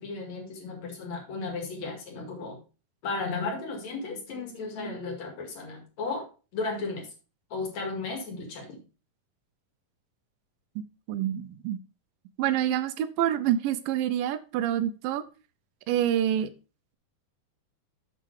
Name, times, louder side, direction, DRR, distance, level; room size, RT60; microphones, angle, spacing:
voice 1, 0.0-2.6 3.0-6.3 6.5-7.1 7.5-8.8, left 3 dB, 55° left, 2 dB, 3.2 m, -34 dB
voice 2, 10.8-11.8 12.4-15.2 15.9-16.5, right 11 dB, 85° right, 12 dB, 2.4 m, -27 dB
7.6 x 6.4 x 4.7 m, 0.33 s
omnidirectional pair, 3.9 m